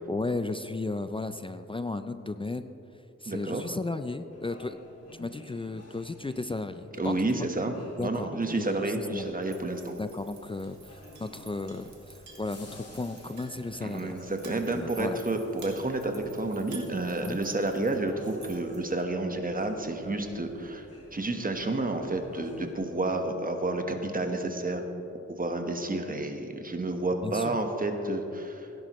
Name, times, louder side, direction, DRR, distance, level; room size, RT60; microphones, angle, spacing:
voice 1, 0.1-2.7 3.2-4.8 5.1-7.1 8.0-8.3 8.5-9.3 10.0-14.1 14.5-15.2 17.2-17.4 27.2-27.6, left 2 dB, 20° left, 10 dB, 0.4 m, -34 dB
voice 2, 3.3-3.6 7.0-9.9 13.8-20.9 21.1-24.8 25.3-28.7, right 2 dB, 30° right, 5 dB, 1.2 m, -30 dB
sound 1, 4.3-22.7, left 1 dB, 55° left, 2.1 m, -51 dB
sound 2, 9.4-19.0, right 6 dB, 65° right, 1.5 m, -53 dB
Chink clink, 9.7-18.0, right 3 dB, 85° right, 2.0 m, -55 dB
17.0 x 10.5 x 3.1 m, 2.9 s
cardioid pair, 70°, 30 cm